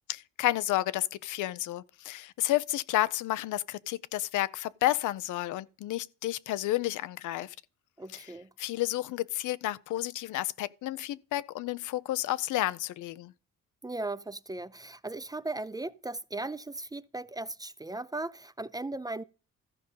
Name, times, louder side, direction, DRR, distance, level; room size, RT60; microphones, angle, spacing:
voice 1, 0.1-7.5 8.1-8.3 8.6-13.3, left 15 dB, 80° left, 0.6 m, -31 dB
voice 2, 8.0-8.5 13.8-19.2, right 2 dB, 15° right, 0.4 m, -37 dB
14.0 x 5.1 x 5.5 m
cardioid pair, 90°, 30 cm